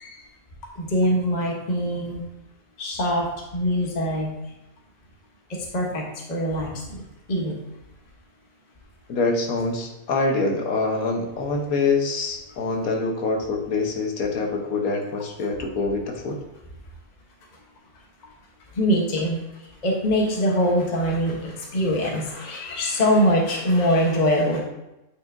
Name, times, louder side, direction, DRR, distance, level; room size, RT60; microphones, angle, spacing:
voice 1, 0.8-2.2 2.8-3.3 3.5-4.3 5.7-6.0 6.3-6.7 7.3-7.5 18.8-19.4 19.8-24.6, equal, 35° left, -1 dB, 1.0 m, -22 dB
voice 2, 9.1-16.4, left 3 dB, 85° left, 2 dB, 1.4 m, -25 dB
8.7 x 4.9 x 2.6 m, 0.94 s
omnidirectional pair, 1.5 m